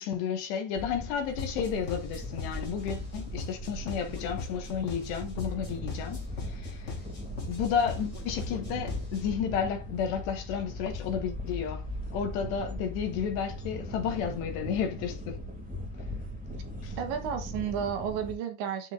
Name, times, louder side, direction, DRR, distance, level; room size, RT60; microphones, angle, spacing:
voice 1, 0.0-7.0 7.5-11.9 12.1-15.4 16.8-17.0, left 7 dB, 70° left, 3.2 m, -32 dB
sound 1, 0.7-18.3, left 1 dB, 10° right, 0.4 m, -39 dB
sound 2, 1.4-9.4, left 2 dB, 25° left, 1.6 m, -41 dB
voice 2, 17.0-18.9, right 8 dB, 75° right, 3.4 m, -32 dB
13.5 x 4.5 x 2.6 m
omnidirectional pair, 5.6 m